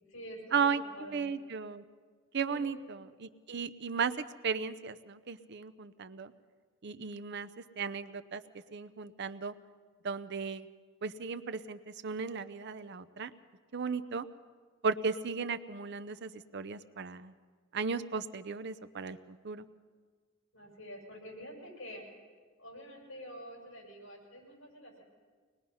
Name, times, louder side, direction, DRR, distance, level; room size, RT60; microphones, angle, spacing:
voice 1, 0.1-1.2 2.5-2.8 20.5-22.0 22.6-25.0, equal, 70° left, -1 dB, 6.8 m, -47 dB
voice 2, 1.1-1.8 2.3-4.1 4.4-6.3 6.8-7.5 7.8-8.4 8.7-9.5 10.0-10.7 11.0-13.3 13.7-14.3 14.8-17.3 17.7-19.6, right 5 dB, 55° right, 12 dB, 0.7 m, -35 dB
24.0 x 20.5 x 5.6 m, 1.5 s
head